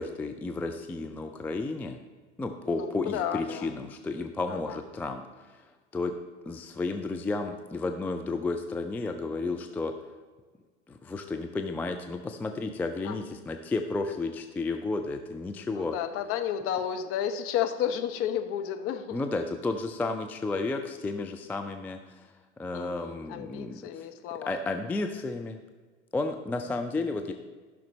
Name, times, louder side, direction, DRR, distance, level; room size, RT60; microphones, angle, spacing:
voice 1, 0.0-2.0 2.4-5.6 5.9-6.1 6.5-9.9 10.9-15.9 19.1-22.3 22.6-24.1 24.5-25.6 26.1-27.3, left 3 dB, 5° left, 6 dB, 0.3 m, -32 dB
voice 2, 2.7-3.7 4.5-4.8 13.0-13.2 15.7-19.2 22.7-24.6 26.6-26.7, left 9 dB, 40° left, 7 dB, 0.9 m, -32 dB
14.5 x 6.1 x 3.1 m, 1.4 s
figure-of-eight pair, 80°, 35 cm